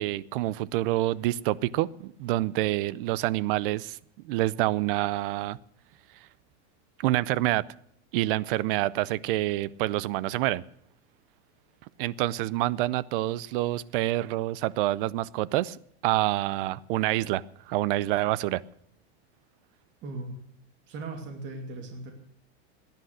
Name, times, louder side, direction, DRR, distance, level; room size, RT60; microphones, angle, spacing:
voice 1, 0.0-4.0 4.2-5.6 7.0-7.6 8.1-10.6 12.0-18.6, right 16 dB, 50° right, 21 dB, 0.6 m, -27 dB
voice 2, 20.0-20.4 20.9-22.1, right 2 dB, 35° right, 3 dB, 2.7 m, -38 dB
17.5 x 10.5 x 6.4 m, 0.68 s
supercardioid pair, 165°, 34 cm